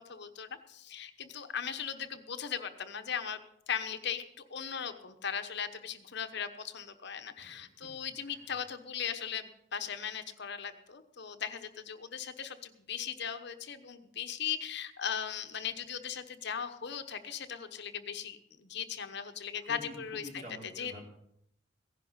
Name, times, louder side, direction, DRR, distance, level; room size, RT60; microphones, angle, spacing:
voice 1, 0.0-3.4 3.7-4.2 4.5-20.4 20.8-20.9, left 7 dB, 65° left, 8 dB, 1.0 m, -38 dB
voice 2, 19.6-21.1, equal, 45° right, 0 dB, 3.3 m, -48 dB
16.5 x 11.0 x 5.5 m, 0.77 s
head